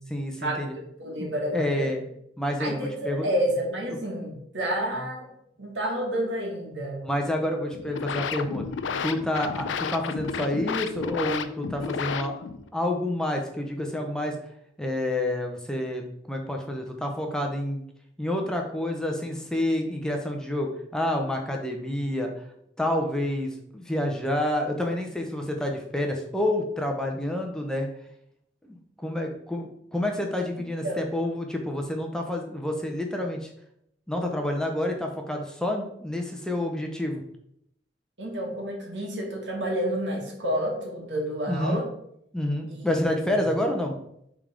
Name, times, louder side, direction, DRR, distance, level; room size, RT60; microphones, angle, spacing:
voice 1, 0.1-0.7 1.2-2.0 2.4-3.3 7.0-8.6 9.0-12.3 12.7-14.4 14.8-17.8 18.2-22.3 22.8-27.9 28.7-33.5 34.1-37.2 41.5-41.8 42.3-43.9, left 1 dB, 5° left, 2 dB, 0.6 m, -28 dB
voice 2, 1.0-2.0 2.6-5.3 5.6-7.0 7.5-7.6 30.8-31.0 38.2-41.9 42.7-43.3, right 1 dB, 75° right, 0 dB, 1.8 m, -30 dB
sound 1, 7.7-12.7, left 6 dB, 90° left, 0.4 m, -32 dB
5.3 x 3.6 x 4.9 m, 0.73 s
head